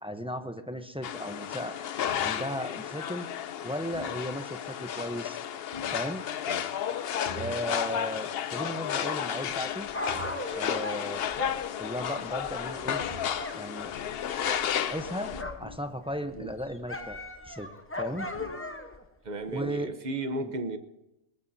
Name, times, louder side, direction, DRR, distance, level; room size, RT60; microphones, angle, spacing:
voice 1, 0.0-1.8 2.2-3.3 3.6-5.4 5.9-6.2 7.3-9.9 10.5-11.3 11.8-13.0 13.5-13.9 14.4-15.3 15.6-17.2 17.5-17.7 18.0-18.3 19.5-19.9 20.4-20.5, equal, 5° right, 8 dB, 0.6 m, -36 dB
sound 1, 1.0-15.4, left 9 dB, 60° left, 0.8 m, -33 dB
sound 2, 2.1-2.3 3.9-4.2 5.7-6.0 7.2-7.5 7.8-8.1 8.5-8.6 10.1-10.3 13.0-13.7 15.3-15.8 16.7-16.8 18.3-18.5, equal, 35° left, 6.8 m, -43 dB
Dog, 9.5-13.6 13.9-15.8 16.1-19.0 19.7-19.8, left 2 dB, 10° left, 1.0 m, -38 dB
voice 2, 19.2-20.8, right 2 dB, 40° right, 9 dB, 1.0 m, -35 dB
20.0 x 18.5 x 2.7 m, 0.93 s
omnidirectional pair, 1.2 m